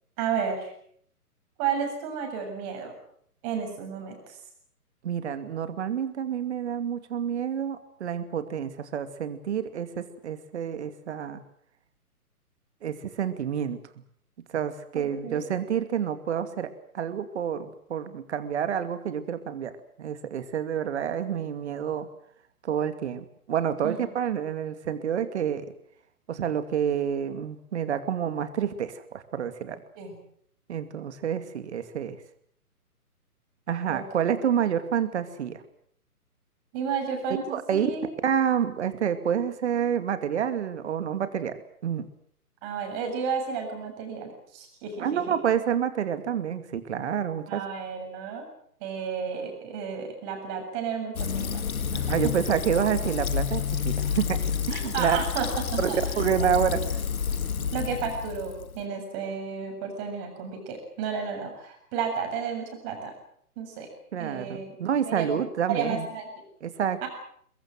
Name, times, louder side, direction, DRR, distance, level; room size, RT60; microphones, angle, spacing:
voice 1, 0.2-0.7 1.6-2.9 3.4-4.4 14.9-15.4 23.8-24.1 30.0-30.2 33.9-34.6 36.7-38.1 42.6-45.3 47.5-48.4 48.8-51.5 51.9-52.4 54.7-56.0 56.4-56.5 57.6-63.1 63.6-63.9 64.2-64.7 65.1-66.3 67.0-67.1, right 6 dB, 25° right, 4 dB, 7.4 m, -32 dB
voice 2, 5.0-11.4 12.8-13.8 14.5-16.7 16.9-19.7 20.0-22.1 22.6-25.7 26.3-29.8 30.7-32.2 33.7-35.6 37.5-37.9 38.2-42.1 45.0-47.6 52.1-55.2 55.8-55.9 56.2-57.0 64.1-66.1 66.6-67.1, right 8 dB, 45° right, 11 dB, 2.6 m, -28 dB
Fill (with liquid), 51.2-58.8, left 7 dB, 65° left, 2.1 m, -29 dB
23.5 x 22.0 x 7.7 m, 0.65 s
figure-of-eight pair, 135°, 46 cm